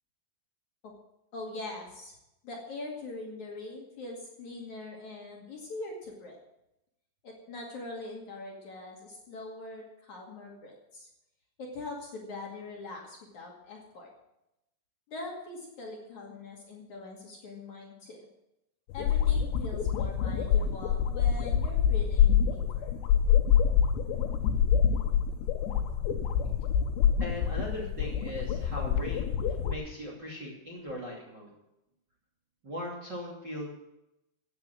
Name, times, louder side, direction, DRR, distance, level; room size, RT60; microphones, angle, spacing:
voice 1, 1.3-2.2 2.4-6.4 7.2-11.1 11.6-14.1 15.1-18.3 18.9-22.9, left 2 dB, 50° left, -2 dB, 3.0 m, -42 dB
sound 1, 18.9-29.7, left 8 dB, 75° left, 3.2 m, -26 dB
voice 2, 27.2-31.5 32.6-33.7, left 1 dB, 30° right, -3 dB, 2.7 m, -39 dB
15.5 x 9.3 x 6.1 m, 0.88 s
omnidirectional pair, 5.2 m